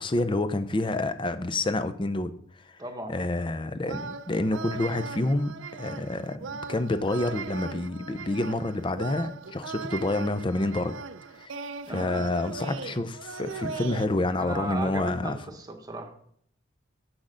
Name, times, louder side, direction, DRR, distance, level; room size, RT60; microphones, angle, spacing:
voice 1, 0.0-2.3 3.1-10.9 11.4-11.5 11.9-15.4, left 2 dB, 25° left, 11 dB, 0.5 m, -28 dB
voice 2, 2.8-3.2 11.9-12.3 14.4-16.3, right 1 dB, 20° right, 4 dB, 1.1 m, -36 dB
sound 1, 3.8-14.1, right 5 dB, 65° right, 0.5 m, -39 dB
7.4 x 6.3 x 5.1 m, 0.65 s
head